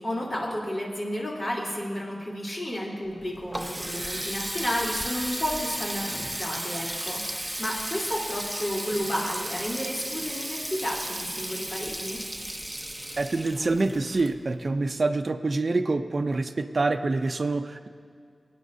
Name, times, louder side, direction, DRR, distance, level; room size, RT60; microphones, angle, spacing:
voice 1, 0.0-12.2, equal, 60° left, -6 dB, 3.3 m, -32 dB
Water tap faucet, 3.1-14.8, right 1 dB, 10° right, 0.8 m, -34 dB
voice 2, 13.2-17.9, right 3 dB, 60° right, 7 dB, 0.6 m, -26 dB
20.5 x 9.5 x 2.7 m, 2.3 s
cardioid pair, 50°, 0 cm